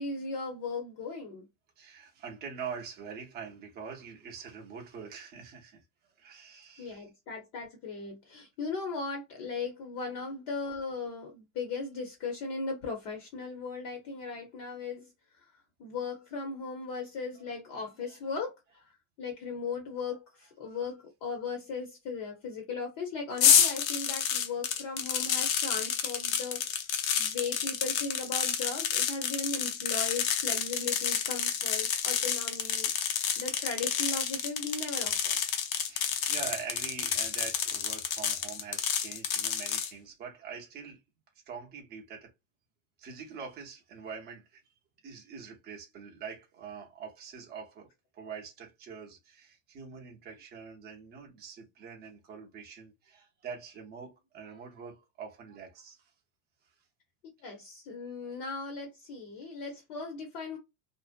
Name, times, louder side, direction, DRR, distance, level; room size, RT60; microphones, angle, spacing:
voice 1, 0.0-1.5 6.8-15.1 15.8-18.8 19.2-26.6 27.2-32.9 33.4-35.3 57.4-60.6, left 4 dB, 35° left, 0.7 m, -37 dB
voice 2, 1.8-5.8 6.2-7.1 17.7-18.2 35.8-41.0 41.5-42.3 43.0-44.6 45.0-56.1 58.3-58.4, right 6 dB, 25° right, 0.7 m, -44 dB
sound 1, 23.4-39.9, left 8 dB, 85° left, 0.8 m, -29 dB
2.6 x 2.0 x 2.4 m
supercardioid pair, 155°, 41 cm